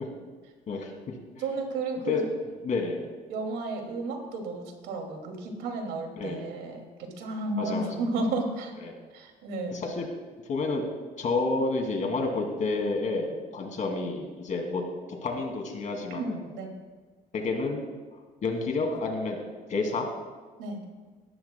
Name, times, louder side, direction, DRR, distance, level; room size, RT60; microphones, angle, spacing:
voice 1, 0.7-1.1 2.1-2.2 2.6-3.0 6.2-6.5 7.6-7.9 8.8-8.9 9.7-10.1 10.5-10.9 11.2-14.8 15.2-16.4 17.3-17.8 18.4-19.4 19.7-20.1, left 3 dB, 50° left, 2 dB, 2.5 m, -29 dB
voice 2, 1.4-2.3 3.3-8.7 9.1-9.8 16.1-16.7 20.6-20.8, right 3 dB, 85° right, 2 dB, 2.5 m, -33 dB
18.5 x 12.5 x 2.3 m, 1.4 s
cardioid pair, 110°, 17 cm